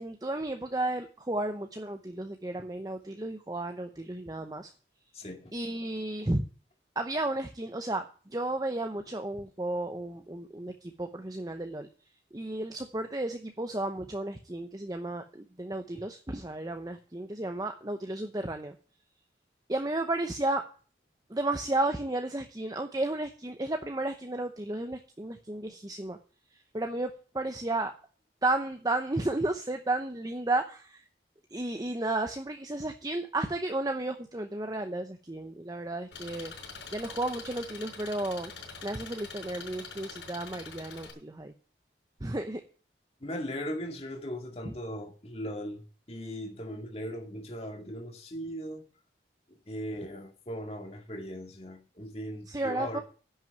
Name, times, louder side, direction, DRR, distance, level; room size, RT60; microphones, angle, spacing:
voice 1, 0.0-4.7 5.5-6.4 7.0-11.9 12.3-18.7 19.7-20.6 21.3-26.2 26.7-27.1 27.3-27.9 28.4-31.0 31.5-36.5 36.9-38.5 38.8-41.5 42.2-42.6 52.5-53.0, right 2 dB, 20° right, 0.8 m, -33 dB
voice 2, 5.1-5.5 43.2-48.9 49.5-53.0, equal, 35° left, 2.1 m, -38 dB
Engine, 36.1-41.1, left 5 dB, 90° left, 5.3 m, -44 dB
10.5 x 6.3 x 8.9 m
head